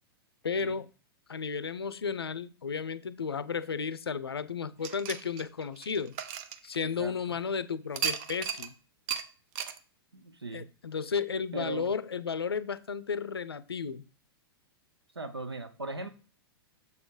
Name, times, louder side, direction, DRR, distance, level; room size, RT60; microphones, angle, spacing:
voice 1, 0.4-0.9 1.3-6.1 6.6-8.7 10.5-14.1, left 6 dB, 75° left, 0.5 m, -33 dB
sound 1, 4.8-7.2 7.9-8.7 9.1-9.2 9.6-9.8, right 8 dB, 40° right, 0.7 m, -35 dB
voice 2, 6.8-7.4 10.1-10.7 11.5-11.9 15.1-16.1, right 2 dB, 80° right, 0.8 m, -39 dB
7.1 x 4.1 x 4.9 m
figure-of-eight pair, 100°, 13 cm